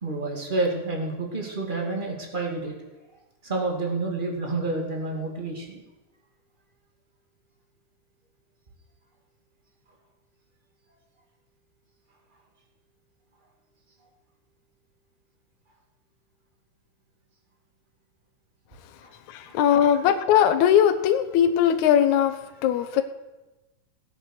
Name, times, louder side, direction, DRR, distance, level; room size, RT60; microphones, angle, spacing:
voice 1, 0.0-2.7 3.4-5.8 19.0-19.1 19.4-19.6, right 2 dB, 15° right, 1 dB, 2.1 m, -29 dB
voice 2, 19.3-22.4 22.6-23.0, left 9 dB, 75° left, 7 dB, 2.2 m, -20 dB
18.0 x 8.4 x 6.5 m, 1.1 s
omnidirectional pair, 3.6 m